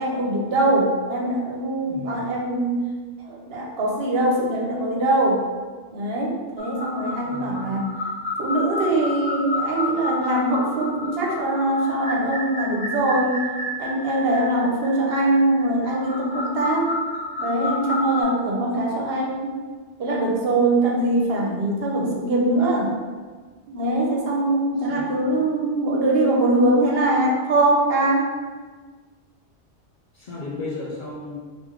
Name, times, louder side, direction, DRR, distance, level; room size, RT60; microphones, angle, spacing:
voice 1, 0.0-2.8 3.2-5.4 5.9-7.9 8.4-13.4 13.8-16.9 17.4-19.6 20.0-22.9 23.7-28.4, right 1 dB, 60° right, -2 dB, 0.8 m, -22 dB
voice 2, 1.8-2.4 7.2-7.8 24.9-25.2 30.1-31.4, left 2 dB, 55° left, -5 dB, 0.6 m, -34 dB
sound 1, 6.6-18.2, left 2 dB, 25° left, 0.9 m, -30 dB
3.2 x 2.5 x 3.5 m, 1.4 s
omnidirectional pair, 1.2 m